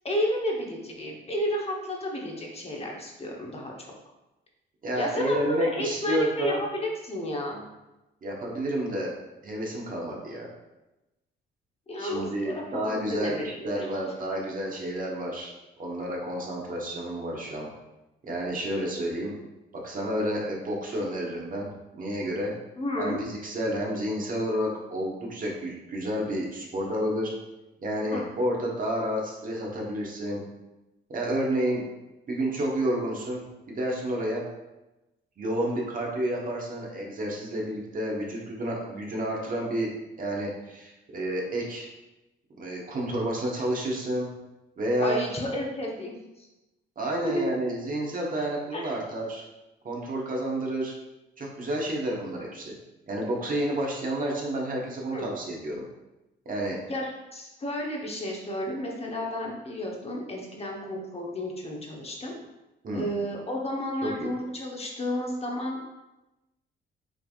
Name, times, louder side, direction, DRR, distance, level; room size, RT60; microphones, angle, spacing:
voice 1, 0.0-3.7 5.0-7.7 11.9-13.9 22.8-23.2 28.1-28.3 45.0-46.5 47.2-47.4 48.7-48.9 55.1-55.3 56.9-62.3 62.9-65.8, equal, 30° left, -1 dB, 1.0 m, -32 dB
voice 2, 4.8-6.6 8.2-9.1 9.4-10.5 12.0-15.5 15.8-17.7 18.2-19.3 19.8-21.7 22.0-22.5 23.0-27.3 27.8-30.4 31.1-31.8 32.3-34.4 35.4-39.9 40.2-41.9 42.6-44.3 44.8-45.2 47.0-49.5 49.8-51.0 51.4-52.7 53.1-55.8 56.4-56.8 62.8-63.1 64.0-64.3, right 1 dB, 45° right, -2 dB, 1.3 m, -30 dB
5.9 x 3.4 x 2.4 m, 0.99 s
cardioid pair, 90°, 20 cm